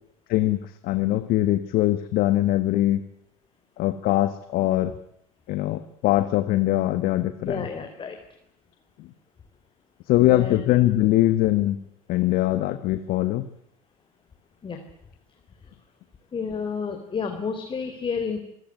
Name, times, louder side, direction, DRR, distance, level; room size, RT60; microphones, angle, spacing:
voice 1, 0.3-3.0 3.8-4.9 5.5-7.7 10.1-11.8 12.1-13.4, left 15 dB, 55° left, 11 dB, 1.6 m, -22 dB
voice 2, 7.4-8.2 10.2-10.6 14.6-14.8 16.3-18.4, left 5 dB, 30° left, 5 dB, 4.0 m, -30 dB
26.0 x 17.0 x 9.6 m, 0.75 s
hypercardioid pair, 80°, 18 cm